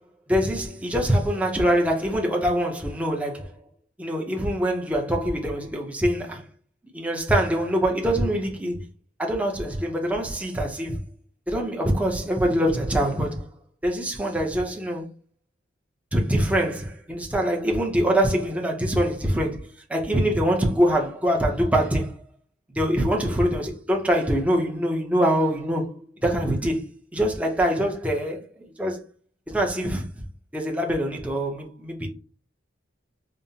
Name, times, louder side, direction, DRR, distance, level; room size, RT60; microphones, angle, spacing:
voice 1, 0.3-3.5 4.0-6.4 6.9-8.8 9.2-11.0 11.5-13.5 13.8-15.1 16.1-22.1 22.8-29.0 29.5-30.1 30.5-32.1, equal, 5° right, 0.7 m, -24 dB
5.3 x 2.1 x 2.7 m
head